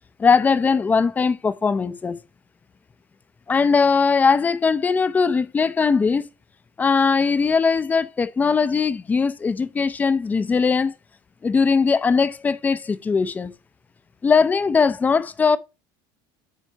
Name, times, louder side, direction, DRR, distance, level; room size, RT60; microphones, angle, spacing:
voice 1, 0.2-2.2 3.5-6.2 6.8-10.9 11.4-13.5 14.2-15.6, left 5 dB, 15° left, 0.5 m, -20 dB
9.1 x 4.5 x 2.8 m
cardioid pair, 155°, 11 cm